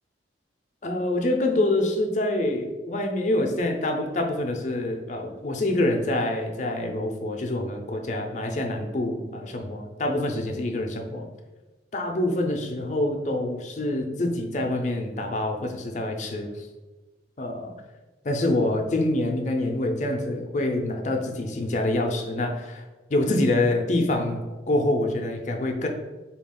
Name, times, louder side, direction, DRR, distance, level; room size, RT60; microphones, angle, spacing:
voice 1, 0.8-11.3 11.9-16.7 17.4-17.7 18.2-22.8 23.1-25.9, left 1 dB, 40° left, 3 dB, 0.5 m, -26 dB
4.2 x 2.3 x 3.6 m, 1.2 s
head